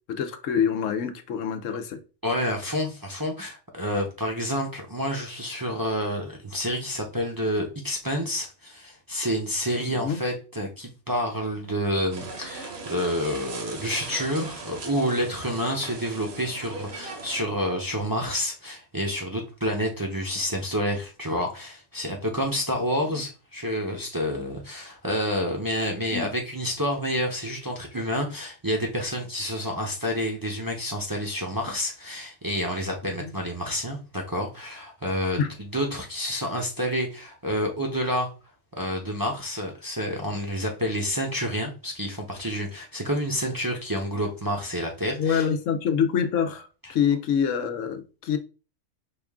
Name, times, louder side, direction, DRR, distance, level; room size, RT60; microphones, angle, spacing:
voice 1, 0.1-2.0 9.9-10.2 23.1-23.2 26.1-26.3 33.0-33.3 35.4-35.5 45.2-48.4, left 7 dB, 85° left, 1.0 m, -26 dB
voice 2, 2.2-38.3 38.7-45.4, equal, 20° right, 0.6 m, -29 dB
sound 1, 12.1-17.4, right 3 dB, 60° right, 1.1 m, -39 dB
5.2 x 2.4 x 3.5 m
omnidirectional pair, 1.3 m